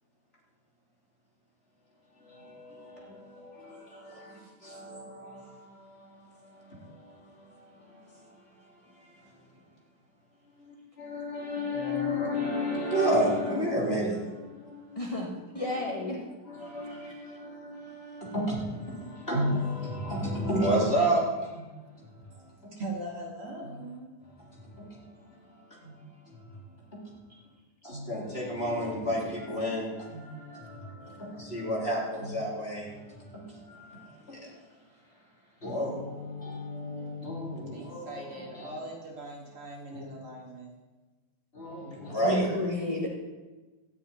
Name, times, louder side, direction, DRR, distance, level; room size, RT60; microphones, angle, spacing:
voice 1, 2.2-8.3 8.9-9.1 10.6-15.2 15.5-16.1 16.5-22.1 22.6-22.7 23.6-23.8 24.5-25.1 25.4-26.4 26.9-27.0 27.8-34.5 35.6-38.7 39.9-40.2 41.5-42.7, equal, 15° left, -5 dB, 3.6 m, -32 dB
voice 2, 14.9-16.2 17.0-17.2 42.2-43.1, left 1 dB, 55° left, -2 dB, 0.3 m, -32 dB
voice 3, 22.8-24.1 37.7-40.7, right 2 dB, 45° right, -2 dB, 2.9 m, -40 dB
13.0 x 7.0 x 10.0 m, 1.2 s
omnidirectional pair, 3.9 m